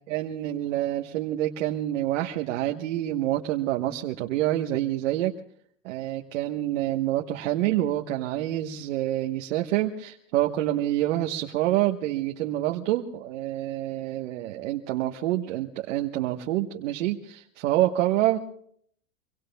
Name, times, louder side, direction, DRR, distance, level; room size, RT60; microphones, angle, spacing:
voice 1, 0.1-5.3 5.8-18.4, right 14 dB, 70° right, 3 dB, 1.3 m, -27 dB
26.0 x 23.5 x 2.3 m, 0.64 s
supercardioid pair, 140°, 38 cm